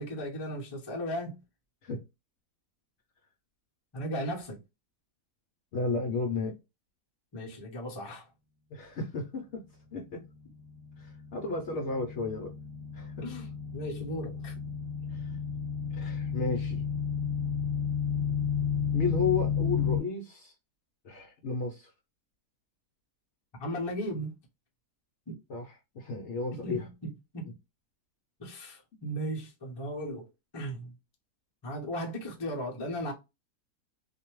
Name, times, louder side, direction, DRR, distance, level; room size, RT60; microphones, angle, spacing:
voice 1, 0.0-1.4 3.9-4.6 7.3-8.3 13.2-14.5 23.6-24.3 25.3-25.4 26.6-27.5 28.4-30.3 30.5-30.9 31.6-33.1, equal, 45° left, 0.3 m, -36 dB
voice 2, 5.7-6.5 8.7-9.6 9.9-10.2 11.0-12.5 12.9-13.1 15.1-15.3 15.9-16.8 18.9-20.5 21.0-21.9 25.5-26.9, left 3 dB, 65° left, 0.7 m, -33 dB
sound 1, 10.3-20.0, left 7 dB, 60° right, 0.7 m, -32 dB
2.6 x 2.1 x 2.9 m
omnidirectional pair, 1.7 m